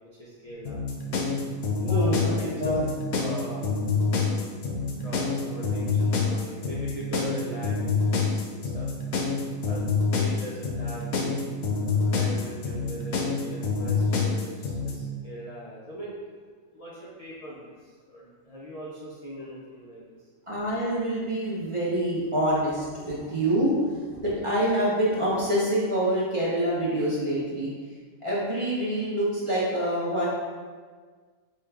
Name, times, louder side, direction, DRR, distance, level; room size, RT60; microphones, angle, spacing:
voice 1, 0.2-0.8 1.8-2.8 3.2-3.7 4.1-4.4 5.0-8.9 9.7-9.8 10.1-11.4 11.9-16.1 16.7-20.2, equal, 65° left, -7 dB, 0.3 m, -40 dB
sound 1, 0.7-14.9, left 4 dB, 85° left, 1.1 m, -26 dB
voice 2, 1.9-2.9 4.7-5.1 12.0-12.4 20.5-27.7 28.2-30.3, right 1 dB, 35° right, -8 dB, 0.5 m, -26 dB
4.3 x 2.3 x 3.4 m, 1.5 s
omnidirectional pair, 1.5 m